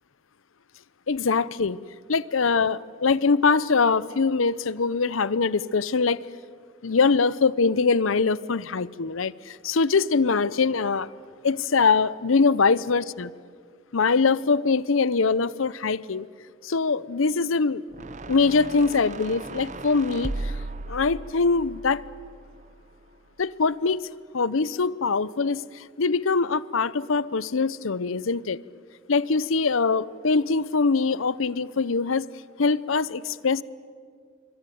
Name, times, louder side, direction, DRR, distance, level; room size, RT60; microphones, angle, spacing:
voice 1, 1.1-1.8 2.1-6.2 6.8-11.1 11.4-13.3 13.9-16.3 16.6-17.8 18.3-20.5 20.9-22.0 23.4-24.0 24.3-28.6 29.1-32.3 32.6-33.6, left 4 dB, 80° left, 19 dB, 0.7 m, -23 dB
sound 1, 17.9-23.2, right 2 dB, 35° right, 0.8 m, -37 dB
25.5 x 25.0 x 9.3 m, 2.1 s
head